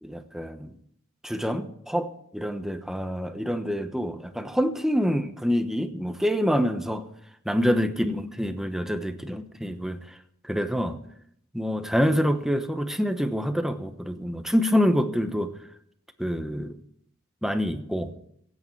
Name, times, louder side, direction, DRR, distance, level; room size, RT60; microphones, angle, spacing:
voice 1, 0.0-0.7 1.2-7.1 7.4-10.2 10.4-11.0 11.5-15.5 16.2-16.8 17.4-18.1, equal, ahead, 8 dB, 0.9 m, -26 dB
24.0 x 8.7 x 4.6 m, 0.70 s
head